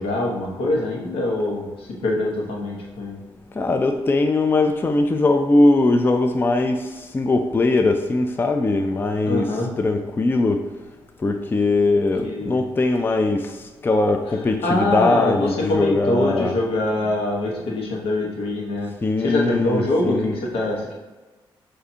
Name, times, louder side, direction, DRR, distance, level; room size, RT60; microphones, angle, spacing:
voice 1, 0.0-3.2 9.2-9.8 12.2-12.6 14.6-18.9 19.2-20.9, left 1 dB, 80° left, -2 dB, 1.1 m, -24 dB
voice 2, 3.5-10.7 11.2-16.6 19.0-20.4, left 2 dB, 20° left, 6 dB, 0.4 m, -20 dB
6.5 x 2.6 x 2.8 m, 1.2 s
cardioid pair, 75°, 10 cm